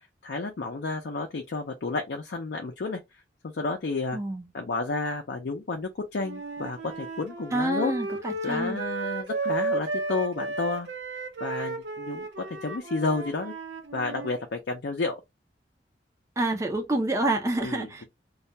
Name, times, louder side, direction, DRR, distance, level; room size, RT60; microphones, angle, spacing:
voice 1, 0.2-3.0 3.4-4.2 4.5-7.9 8.4-10.9 11.4-13.5 13.9-15.2 17.6-18.0, left 3 dB, 65° left, 0.5 m, -31 dB
voice 2, 4.1-4.5 7.5-8.8 16.4-18.0, right 2 dB, 15° right, 0.4 m, -28 dB
Wind instrument woodwind instrument, 6.2-14.4, right 2 dB, 70° right, 0.7 m, -33 dB
2.3 x 2.1 x 2.7 m
head